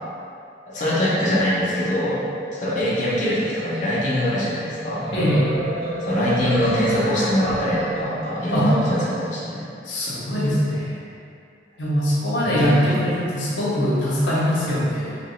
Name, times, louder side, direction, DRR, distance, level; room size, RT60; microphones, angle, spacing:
voice 1, 0.7-2.2 2.6-5.1 6.1-9.7 12.4-13.0, equal, 45° left, -9 dB, 0.7 m, -23 dB
sound 1, 4.7-8.6, right 1 dB, 25° right, 0.8 m, -30 dB
voice 2, 5.1-5.5 8.5-8.7 9.8-11.0 11.8-15.2, equal, 85° left, -7 dB, 0.8 m, -22 dB
3.1 x 3.0 x 3.1 m, 2.4 s
head